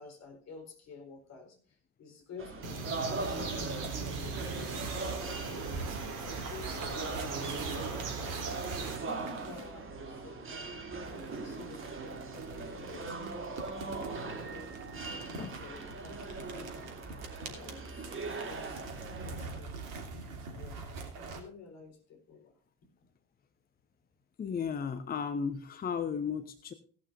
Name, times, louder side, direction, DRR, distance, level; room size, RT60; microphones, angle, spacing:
voice 1, 0.0-3.8 4.0-8.7 9.4-13.2 13.6-16.1 16.5-16.8 17.1-17.2 17.5-20.1 20.4-22.6, left 4 dB, 35° left, 5 dB, 4.2 m, -51 dB
sound 1, 2.4-19.6, right 3 dB, 25° right, 2.9 m, -40 dB
sound 2, 2.6-9.0, right 4 dB, 40° right, 3.3 m, -39 dB
sound 3, 3.2-9.8 11.0-21.4, right 4 dB, 60° right, 2.9 m, -44 dB
voice 2, 24.4-26.7, left 6 dB, 20° left, 10 dB, 0.9 m, -35 dB
17.0 x 11.5 x 2.6 m, 0.42 s
figure-of-eight pair, 70°, 46 cm